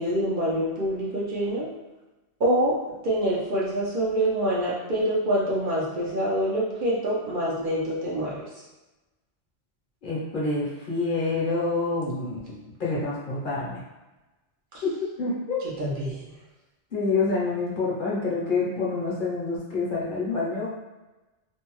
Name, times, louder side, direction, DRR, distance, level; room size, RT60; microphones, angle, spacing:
voice 1, 0.0-1.7 2.4-2.8 3.0-8.4 14.7-14.8 15.6-16.2, right 1 dB, 55° right, -6 dB, 0.7 m, -26 dB
voice 2, 10.0-13.8 15.2-15.6 16.9-20.7, left 3 dB, 55° left, -6 dB, 0.8 m, -27 dB
2.6 x 2.1 x 3.0 m, 1.1 s
omnidirectional pair, 1.1 m